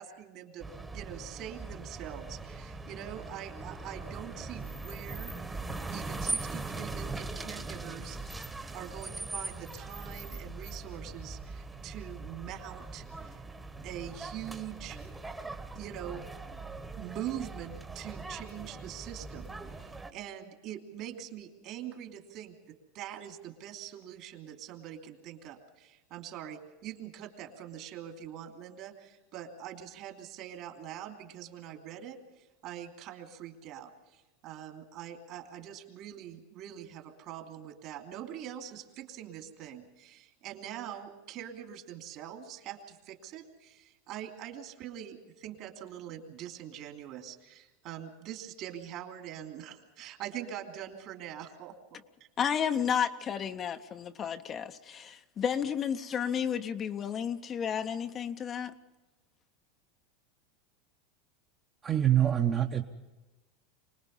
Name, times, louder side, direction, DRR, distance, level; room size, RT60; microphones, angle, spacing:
voice 1, 0.0-8.2 8.7-13.4 13.8-15.0 15.7-16.3 17.0-52.3, right 10 dB, 50° right, 2.9 m, -44 dB
sound 1, 0.6-20.1, right 3 dB, 10° right, 1.3 m, -41 dB
voice 2, 52.4-58.7, left 8 dB, 30° left, 0.8 m, -32 dB
voice 3, 61.8-62.8, right 11 dB, 25° right, 1.1 m, -25 dB
25.0 x 20.0 x 5.5 m
supercardioid pair, 135°, 0 cm